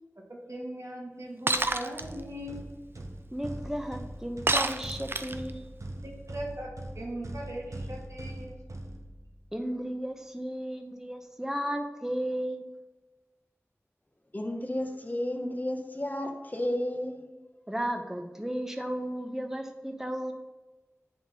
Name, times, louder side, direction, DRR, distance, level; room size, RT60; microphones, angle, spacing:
voice 1, 0.3-2.6 6.0-8.6, right 1 dB, 70° right, -1 dB, 1.4 m, -39 dB
Shatter, 1.5-2.0 4.5-5.5, right 2 dB, 45° right, 0.4 m, -27 dB
sound 1, 1.5-9.5, right 1 dB, 85° right, 0.7 m, -42 dB
voice 2, 3.3-5.6 9.5-12.7 17.7-20.3, equal, 10° right, 4 dB, 0.8 m, -34 dB
voice 3, 14.3-17.3, left 1 dB, 35° left, 3 dB, 0.9 m, -32 dB
9.0 x 3.6 x 4.0 m, 1.2 s
wide cardioid pair, 45°, 5 cm